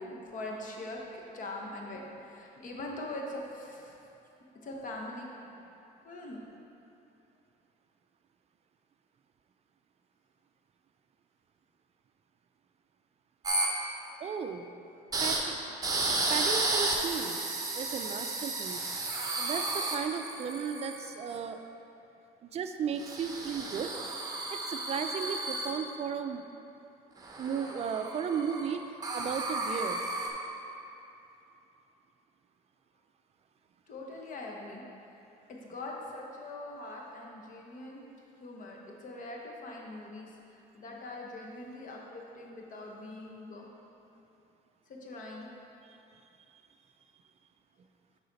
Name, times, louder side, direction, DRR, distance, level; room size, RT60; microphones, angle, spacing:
voice 1, 0.0-2.0 2.3-3.9 4.6-5.6 6.0-6.4 33.9-34.8 35.6-38.1 38.4-38.8 39.0-40.3 40.7-43.7 45.0-45.5, left 2 dB, 50° left, -1 dB, 1.0 m, -42 dB
sound 1, 13.4-13.7 15.1-15.4 15.8-21.4 23.0-25.7 27.2-28.8 29.0-30.3, right 2 dB, 20° right, 0.8 m, -33 dB
voice 2, 14.2-14.6 15.2-15.6 16.3-17.4 17.7-18.8 19.2-21.6 22.4-23.9 24.5-26.4 27.4-28.8 29.1-30.0 45.8-46.0, right 7 dB, 40° right, 7 dB, 0.4 m, -35 dB
6.4 x 4.9 x 4.0 m, 2.8 s
cardioid pair, 110°, 17 cm